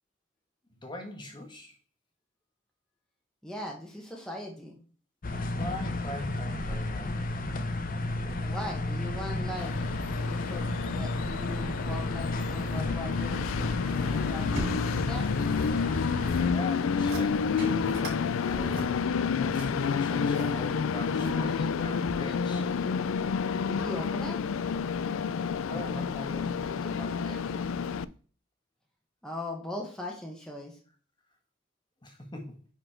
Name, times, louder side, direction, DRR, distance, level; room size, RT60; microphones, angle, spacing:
voice 1, 0.7-1.7 5.6-7.2 8.2-8.4 16.5-22.7 25.6-27.6 32.0-32.6, left 1 dB, 20° left, 3 dB, 1.5 m, -41 dB
voice 2, 3.4-4.8 8.4-9.8 10.2-15.3 23.7-24.4 29.2-30.8, left 1 dB, 5° left, -1 dB, 1.3 m, -39 dB
sound 1, 5.2-16.5, left 2 dB, 45° left, 0.7 m, -33 dB
Train, 9.6-28.0, left 6 dB, 80° left, 0.4 m, -30 dB
sound 2, 13.9-15.7 16.0-16.5 16.9-17.2 17.6-18.2 18.5-20.5 21.0-21.6 22.1-22.2, right 1 dB, 50° right, 4.7 m, -39 dB
9.9 x 4.2 x 4.4 m, 0.41 s
head